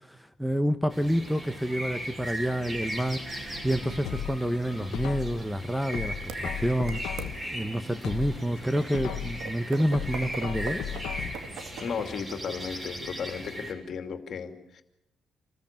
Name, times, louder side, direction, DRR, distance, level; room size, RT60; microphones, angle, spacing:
voice 1, 0.1-3.2 3.6-7.0 7.5-10.8, equal, 5° right, 12 dB, 1.1 m, -28 dB
sound 1, 0.9-13.7, right 1 dB, 25° right, 6.8 m, -38 dB
sound 2, 4.0-5.5 5.9-7.5 7.9-9.5 9.9-11.5 11.9-12.0, left 10 dB, 90° left, 1.1 m, -36 dB
sound 3, 6.3-6.4 6.9-7.3 8.0-8.1 8.8-12.4, right 7 dB, 85° right, 2.2 m, -41 dB
voice 2, 11.8-14.8, left 6 dB, 55° left, 7 dB, 2.6 m, -35 dB
27.5 x 14.5 x 9.0 m, 0.90 s
cardioid pair, 90°, 0 cm